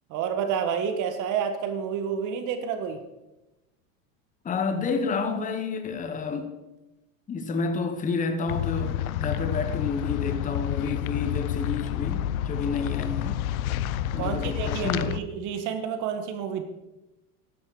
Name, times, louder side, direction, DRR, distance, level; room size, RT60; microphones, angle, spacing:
voice 1, 0.1-3.0 14.2-16.6, right 7 dB, 45° right, 1.5 m, -29 dB
voice 2, 4.4-6.5 7.3-13.4 14.1-15.2, left 4 dB, 20° left, 1.1 m, -30 dB
sound 1, 8.5-15.2, left 11 dB, 85° left, 0.7 m, -29 dB
12.5 x 10.0 x 4.9 m
supercardioid pair, 125°, 41 cm